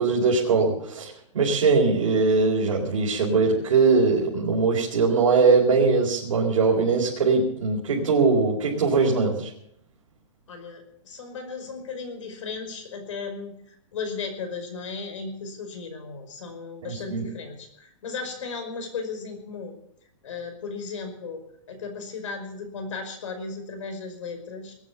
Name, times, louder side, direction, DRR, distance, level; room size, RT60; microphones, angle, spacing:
voice 1, 0.0-9.5 16.8-17.2, right 4 dB, 85° right, -3 dB, 4.1 m, -21 dB
voice 2, 10.5-19.8 20.2-24.7, left 4 dB, 70° left, 6 dB, 5.3 m, -36 dB
20.5 x 9.5 x 6.9 m, 0.74 s
hypercardioid pair, 170°, 17 cm